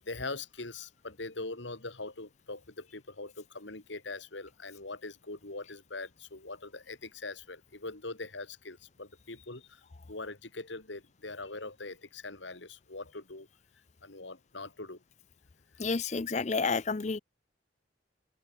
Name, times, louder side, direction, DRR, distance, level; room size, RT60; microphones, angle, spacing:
voice 1, 0.1-9.8 10.1-13.5 14.0-15.0, left 3 dB, 70° left, 2.7 m, -42 dB
voice 2, 15.8-17.2, left 4 dB, 35° left, 0.5 m, -30 dB
head